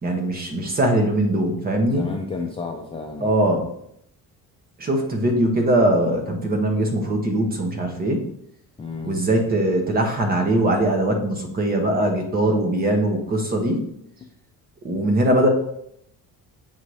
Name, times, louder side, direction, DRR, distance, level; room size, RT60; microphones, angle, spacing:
voice 1, 0.0-2.0 3.2-3.7 4.8-8.2 9.0-13.8 14.8-15.5, right 1 dB, 25° right, 3 dB, 0.9 m, -21 dB
voice 2, 1.8-3.4 8.8-9.2, left 4 dB, 15° left, 0 dB, 0.4 m, -31 dB
7.3 x 2.7 x 4.7 m, 0.74 s
cardioid pair, 165°, 36 cm